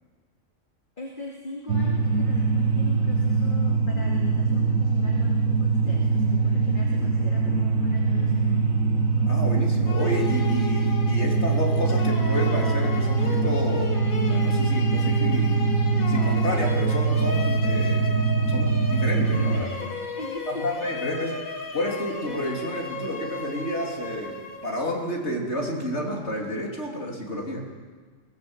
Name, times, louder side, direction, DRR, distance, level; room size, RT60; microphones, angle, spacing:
voice 1, 1.0-8.5 19.3-20.7, left 3 dB, 35° left, -2 dB, 2.7 m, -39 dB
sound 1, 1.7-19.6, right 4 dB, 75° right, 1.6 m, -23 dB
voice 2, 9.3-15.7 16.1-18.1 18.5-19.7 20.5-27.6, left 1 dB, 55° left, -1 dB, 3.6 m, -30 dB
sound 2, 9.9-24.9, left 3 dB, 85° left, 2.5 m, -35 dB
23.0 x 16.5 x 8.1 m, 1.5 s
omnidirectional pair, 1.4 m